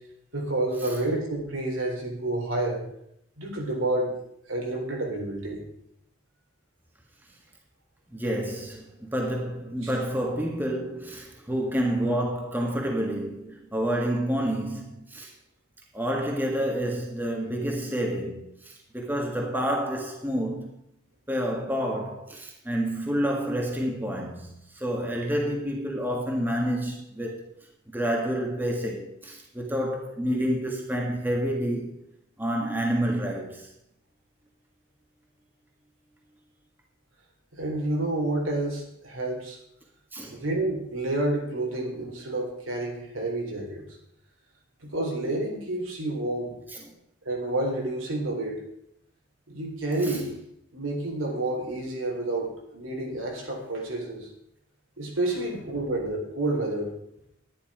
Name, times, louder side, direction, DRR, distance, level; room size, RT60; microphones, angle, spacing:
voice 1, 0.3-2.8 3.4-4.1 4.5-5.6 37.5-39.6 40.3-43.8 44.8-46.6 47.3-48.6 49.5-50.3 50.7-54.3 55.0-56.9, right 2 dB, 80° right, 3.8 m, -29 dB
voice 2, 8.1-15.3 15.9-20.8 21.3-27.4 27.9-32.0 32.4-33.7 40.1-40.4 46.7-46.9 50.0-50.2, equal, 10° right, 1.6 m, -29 dB
11.5 x 10.5 x 5.0 m
head